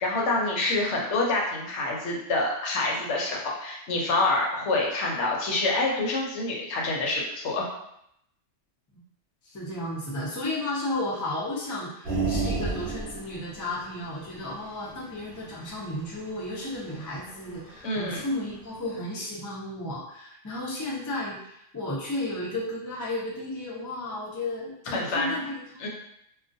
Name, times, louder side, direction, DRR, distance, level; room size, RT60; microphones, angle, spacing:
voice 1, 0.0-7.7 17.8-18.2 24.9-25.3 25.8-25.9, left 2 dB, 70° left, -2 dB, 0.9 m, -27 dB
voice 2, 9.4-25.9, left 1 dB, 30° left, -5 dB, 0.3 m, -33 dB
sound 1, 12.1-17.9 18.2-18.3, right 3 dB, 55° right, 0.8 m, -32 dB
2.3 x 2.2 x 2.5 m, 0.76 s
omnidirectional pair, 1.3 m